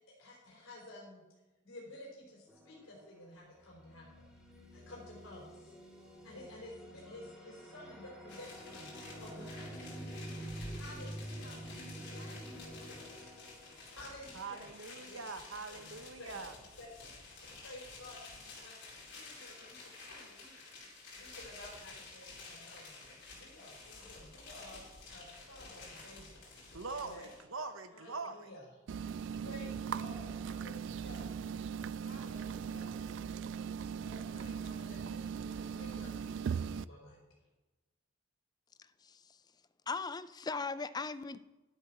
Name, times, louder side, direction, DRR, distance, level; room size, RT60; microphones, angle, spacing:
voice 1, 0.1-1.2 1.6-4.3 4.7-5.7 6.2-8.9 9.2-9.9 10.7-11.6 12.1-13.3 13.9-14.7 15.0-15.4 15.7-16.5 16.8-17.2 17.6-20.5 21.0-23.0 23.3-24.8 25.1-26.4 26.9-27.3 27.9-28.7 29.4-31.3 32.0-33.0 34.0-37.2, left 1 dB, 85° left, -3 dB, 4.0 m, -52 dB
sound 1, 2.5-3.1 3.6-14.2, right 1 dB, 5° right, 2.3 m, -48 dB
sound 2, 8.3-27.4, left 3 dB, 60° left, 4.8 m, -51 dB
voice 2, 14.3-16.5 26.7-28.5, right 4 dB, 85° right, 9 dB, 1.1 m, -43 dB
sound 3, 28.9-36.8, right 7 dB, 60° right, 0.3 m, -39 dB
voice 3, 39.0-39.4 39.9-41.4, left 4 dB, 20° left, 14 dB, 0.4 m, -38 dB
12.0 x 8.3 x 6.1 m, 1.1 s
head